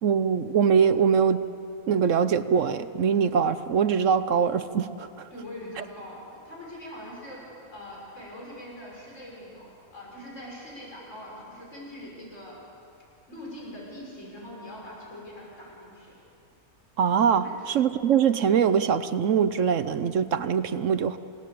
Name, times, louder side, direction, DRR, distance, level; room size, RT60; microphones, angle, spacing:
voice 1, 0.0-1.4 1.9-5.3 5.8-5.9 17.0-21.2, right 7 dB, 60° right, 13 dB, 1.0 m, -23 dB
voice 2, 5.3-7.4 7.7-12.6 13.3-16.1 17.4-17.5, left 1 dB, 50° left, -4 dB, 6.6 m, -42 dB
28.0 x 18.0 x 8.4 m, 2.7 s
omnidirectional pair, 1.6 m